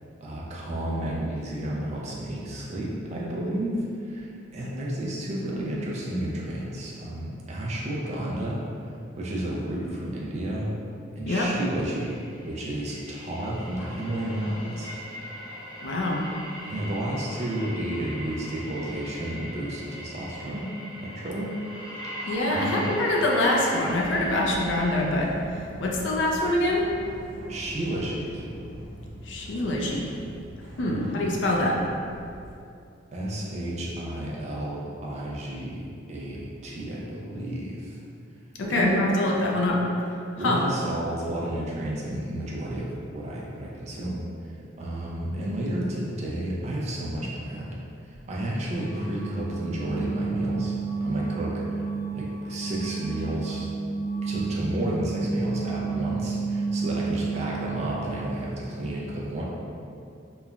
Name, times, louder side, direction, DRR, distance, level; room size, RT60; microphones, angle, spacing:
voice 1, 0.2-8.6 9.2-10.7 11.1-12.2 12.4-14.9 16.7-20.7 21.0-21.6 22.2-23.0 27.5-28.5 30.8-31.1 33.1-38.0 38.7-39.1 39.4-39.5 40.4-44.2 44.8-47.8 48.1-51.8 52.1-53.7 54.2-59.4, right 1 dB, 35° right, -4 dB, 0.3 m, -31 dB
sound 1, 11.9-25.0, equal, 85° left, 1.3 m, -40 dB
voice 2, 15.8-16.2 22.3-25.3 25.8-26.9 29.3-30.1 30.8-31.8 38.6-39.8 40.4-40.6, left 1 dB, 65° left, -2 dB, 0.4 m, -24 dB
sound 2, 23.9-32.5, equal, 5° left, 0.8 m, -42 dB
sound 3, 48.7-58.5, right 4 dB, 55° right, 0.7 m, -31 dB
3.0 x 2.1 x 2.4 m, 2.5 s
head